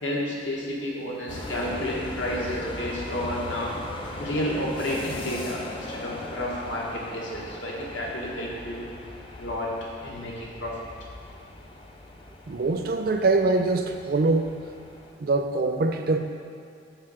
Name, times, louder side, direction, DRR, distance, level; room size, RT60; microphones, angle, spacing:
voice 1, 0.0-3.7 4.2-8.9 9.4-9.7 10.0-10.8, equal, 85° left, -3 dB, 1.3 m, -31 dB
sound 1, 1.3-15.1, left 1 dB, 30° left, 0.4 m, -39 dB
voice 2, 12.5-14.5 15.2-16.2, right 3 dB, 50° right, 6 dB, 0.4 m, -23 dB
6.6 x 4.1 x 4.9 m, 2.5 s
head